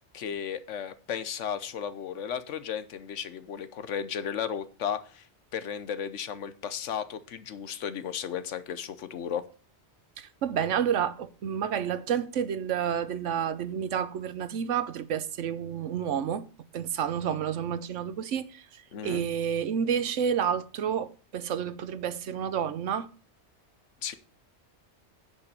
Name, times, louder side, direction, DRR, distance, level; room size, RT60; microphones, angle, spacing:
voice 1, 0.1-5.3 5.5-9.4 18.9-19.2 24.0-24.1, left 8 dB, 85° left, 1.2 m, -34 dB
voice 2, 10.2-16.5 16.7-23.1, right 8 dB, 85° right, 1.1 m, -30 dB
9.9 x 5.4 x 6.7 m
omnidirectional pair, 1.2 m